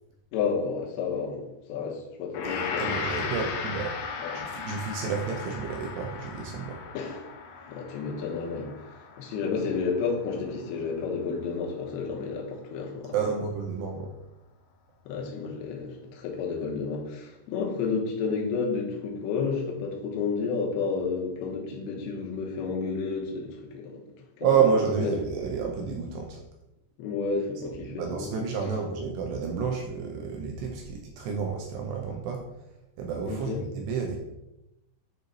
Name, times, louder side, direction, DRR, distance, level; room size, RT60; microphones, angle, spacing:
voice 1, 0.3-1.4 1.7-3.3 4.2-4.4 6.9-7.2 7.7-8.7 9.2-13.1 15.1-24.0 24.4-24.5 25.0-25.1 27.0-28.1 28.6-28.7 33.3-33.6, left 5 dB, 75° left, -1 dB, 2.7 m, -31 dB
Gong, 2.3-11.5, left 5 dB, 90° left, 2.1 m, -37 dB
voice 2, 2.4-6.8 13.1-14.1 24.4-26.4 27.9-32.4 33.0-34.2, right 6 dB, 80° right, 2 dB, 2.6 m, -30 dB
9.0 x 3.1 x 4.0 m, 0.92 s
omnidirectional pair, 5.3 m